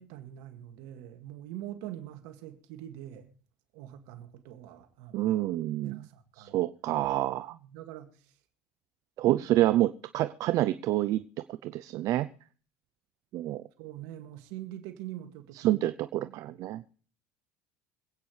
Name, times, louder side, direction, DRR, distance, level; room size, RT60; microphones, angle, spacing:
voice 1, 0.0-3.3 3.7-5.3 5.8-6.6 7.5-8.3 9.3-9.4 13.8-15.8 16.5-16.6, right 13 dB, 80° right, 2.1 m, -44 dB
voice 2, 5.1-6.0 6.4-7.6 9.2-11.2 11.6-12.3 13.3-13.6 15.6-16.8, right 15 dB, 60° right, 0.5 m, -27 dB
26.0 x 9.0 x 3.3 m
supercardioid pair, 95°, 6 cm